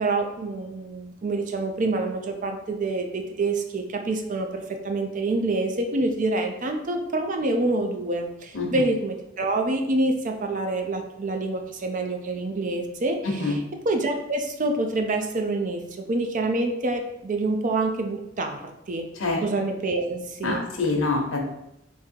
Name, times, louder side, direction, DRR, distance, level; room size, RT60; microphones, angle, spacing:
voice 1, 0.0-13.6 13.8-19.1 19.4-20.6, right 2 dB, 40° right, 5 dB, 0.5 m, -27 dB
voice 2, 20.4-21.4, left 3 dB, 75° left, 2 dB, 0.9 m, -25 dB
3.6 x 2.8 x 4.4 m, 0.85 s
head